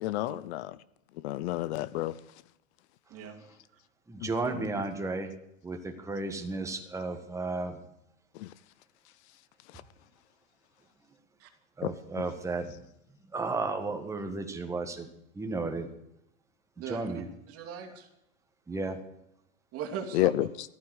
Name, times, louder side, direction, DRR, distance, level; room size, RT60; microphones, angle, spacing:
voice 1, 0.0-0.8 1.2-2.1 4.2-4.6 8.4-8.5 11.8-12.3 20.1-20.5, left 16 dB, 55° left, 0.7 m, -30 dB
voice 2, 4.1-5.3 5.6-7.8 11.8-12.7 13.3-15.1 15.4-15.9 16.9-17.3 18.7-19.0, right 3 dB, 5° right, 1.7 m, -33 dB
voice 3, 16.8-17.1 17.5-18.1 19.7-20.5, right 7 dB, 35° right, 2.8 m, -39 dB
14.5 x 9.4 x 8.1 m
supercardioid pair, 140°, 40 cm